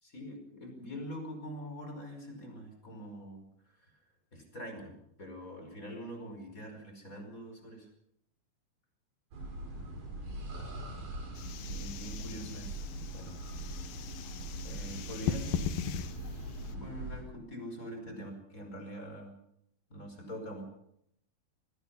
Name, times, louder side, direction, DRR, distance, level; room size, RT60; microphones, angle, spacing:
voice 1, 0.0-3.9 4.3-7.9 11.7-12.9 13.1-13.3 14.6-16.0 16.7-19.3 19.9-20.6, equal, 20° left, 4 dB, 5.5 m, -44 dB
sound 1, 9.3-17.2, right 1 dB, 75° right, 6.7 m, -41 dB
sound 2, 11.4-16.7, left 9 dB, 75° left, 2.9 m, -39 dB
25.5 x 19.5 x 5.6 m, 0.75 s
omnidirectional pair, 4.3 m